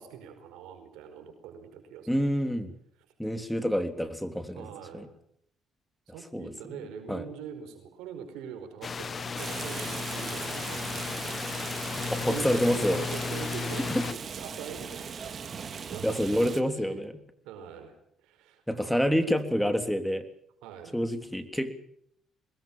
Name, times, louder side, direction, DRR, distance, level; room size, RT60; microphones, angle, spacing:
voice 1, 0.0-2.2 4.5-5.1 6.1-17.0 17.4-17.9 18.2-18.9 20.6-21.0, right 7 dB, 85° right, 7 dB, 4.9 m, -43 dB
voice 2, 2.1-2.7 3.2-4.7 4.9-5.1 6.3-6.5 7.1-7.2 12.1-13.0 13.9-14.0 16.0-17.1 18.7-20.2 20.9-21.8, equal, 5° left, 9 dB, 3.3 m, -27 dB
sound 1, 8.8-14.1, left 5 dB, 40° left, 1.0 m, -34 dB
Rain, 9.4-16.6, right 6 dB, 45° right, 2.6 m, -39 dB
24.0 x 21.0 x 7.5 m, 0.71 s
supercardioid pair, 70°, 0 cm